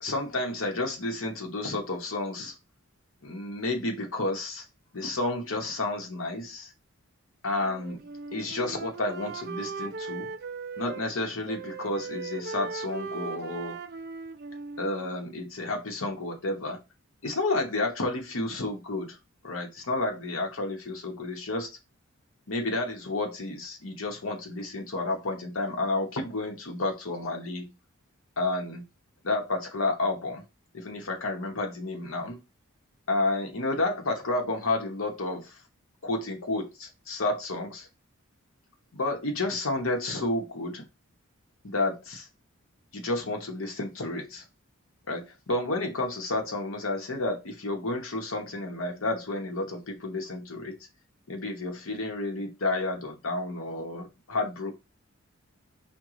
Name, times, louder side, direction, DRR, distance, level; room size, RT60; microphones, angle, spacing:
voice 1, 0.0-2.5 3.2-4.6 4.9-6.7 7.4-10.3 10.8-13.8 14.8-16.8 17.2-19.2 19.4-21.8 22.5-27.7 28.4-28.8 29.2-30.4 30.7-32.4 33.1-35.6 36.0-37.9 38.9-40.8 41.6-42.3 42.9-44.4 45.1-50.8 51.3-54.7, left 2 dB, 70° left, 1.0 m, -31 dB
Wind instrument woodwind instrument, 7.6-11.1 11.5-15.5, right 5 dB, 45° right, 0.3 m, -39 dB
4.6 x 2.2 x 3.7 m
head